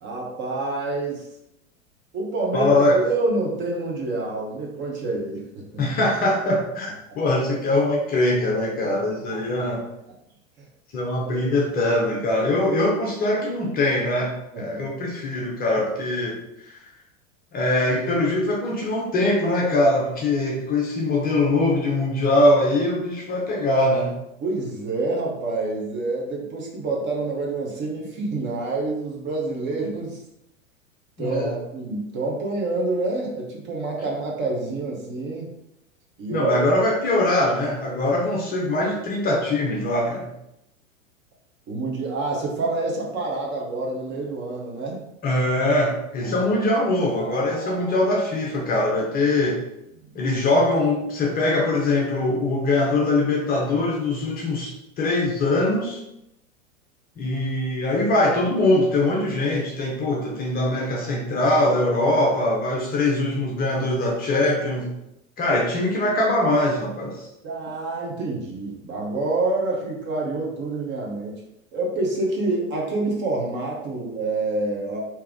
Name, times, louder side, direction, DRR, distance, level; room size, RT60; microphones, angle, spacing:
voice 1, 0.0-1.3 2.1-5.8 11.2-11.5 14.5-15.1 24.4-30.2 31.2-35.5 36.2-36.5 41.7-45.0 46.2-46.5 46.8-46.9 47.2-47.9 48.5-48.7 50.0-50.1 67.4-71.4 71.7-75.0, right 2 dB, 25° right, -2 dB, 0.9 m, -27 dB
voice 2, 2.5-3.0 5.8-6.9 7.2-9.8 10.9-16.9 17.5-24.2 31.2-31.6 36.3-40.3 45.2-49.6 50.1-56.0 57.2-64.9 65.4-67.3, left 1 dB, 20° left, -2 dB, 0.7 m, -22 dB
3.4 x 2.9 x 3.6 m, 0.83 s
figure-of-eight pair, 95°, 41 cm